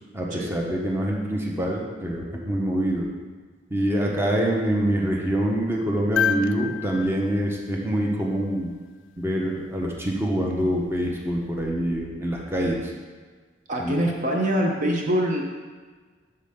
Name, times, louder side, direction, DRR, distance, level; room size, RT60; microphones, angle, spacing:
voice 1, 0.1-3.1 3.7-8.7 9.2-12.9 13.8-13.9, right 1 dB, 15° right, -1 dB, 0.9 m, -25 dB
sound 1, 6.2-8.5 10.5-10.6, left 8 dB, 90° left, 0.4 m, -29 dB
voice 2, 13.7-15.4, equal, 45° right, 0 dB, 0.8 m, -24 dB
8.2 x 6.6 x 3.6 m, 1.5 s
head